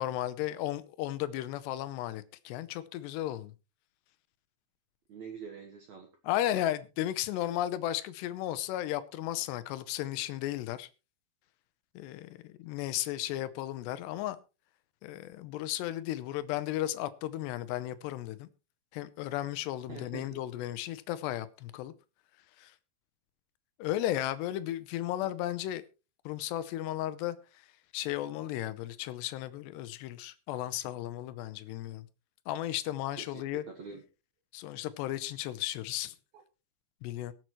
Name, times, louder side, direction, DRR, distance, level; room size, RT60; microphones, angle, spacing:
voice 1, 0.0-3.5 6.2-10.9 12.0-14.4 15.0-18.5 18.9-21.9 22.6-22.7 23.8-25.8 26.3-27.4 27.9-32.1 32.5-33.6 34.5-36.1 37.0-37.3, left 13 dB, 85° left, 3.0 m, -34 dB
voice 2, 5.1-6.1 19.9-20.4 33.2-34.0 36.3-36.4, right 6 dB, 60° right, 2.0 m, -45 dB
22.5 x 7.8 x 3.1 m
omnidirectional pair, 4.9 m